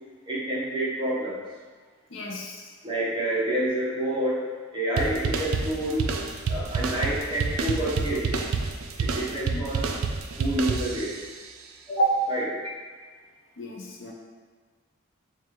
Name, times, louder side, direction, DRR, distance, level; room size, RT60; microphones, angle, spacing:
voice 1, 0.3-1.4 2.8-6.1 6.5-8.3 9.0-9.9 10.4-11.1 12.3-12.5, right 1 dB, 25° right, -7 dB, 0.8 m, -28 dB
voice 2, 2.1-2.6 9.5-9.6 11.9-12.2 13.6-14.1, right 3 dB, 65° left, -1 dB, 0.6 m, -28 dB
sound 1, 5.0-11.3, right 4 dB, 90° right, 0.3 m, -28 dB
4.6 x 2.4 x 2.8 m, 1.5 s
head